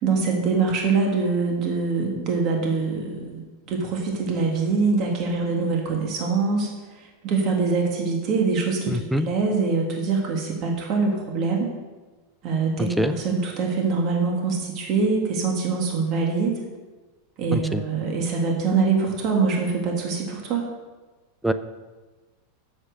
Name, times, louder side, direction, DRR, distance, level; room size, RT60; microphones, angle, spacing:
voice 1, 0.0-6.7 7.0-11.7 12.4-16.6 17.4-20.7, right 4 dB, 40° right, 0 dB, 1.8 m, -24 dB
voice 2, 8.9-9.3 13.0-13.1 17.5-17.8 21.4-21.5, equal, 5° right, 11 dB, 0.5 m, -23 dB
8.3 x 7.2 x 6.6 m, 1.2 s
supercardioid pair, 145°, 0 cm